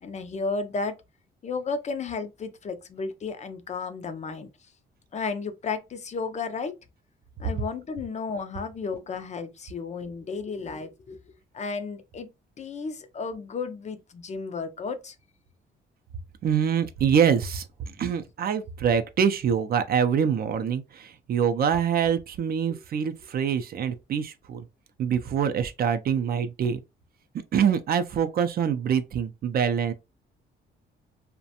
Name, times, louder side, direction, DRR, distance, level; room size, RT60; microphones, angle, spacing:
voice 1, 0.0-1.0 1.4-4.5 5.1-6.7 7.4-12.3 12.6-15.2, left 4 dB, 35° left, 0.4 m, -33 dB
voice 2, 16.4-24.6 25.0-26.8 27.5-29.9, right 7 dB, 50° right, 0.4 m, -25 dB
2.4 x 2.1 x 2.7 m
cardioid pair, 90°, 20 cm